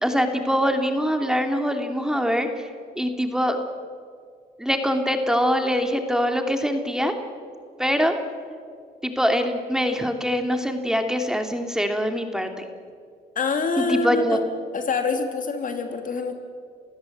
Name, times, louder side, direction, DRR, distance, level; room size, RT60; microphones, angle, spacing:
voice 1, 0.0-2.7 3.0-3.6 4.6-7.1 7.8-8.2 9.0-12.7 13.8-14.4, equal, 5° right, 5 dB, 2.7 m, -23 dB
voice 2, 13.3-14.4 14.7-16.3, left 4 dB, 50° left, 6 dB, 3.0 m, -25 dB
28.5 x 16.0 x 8.0 m, 2.2 s
supercardioid pair, 75°, 17 cm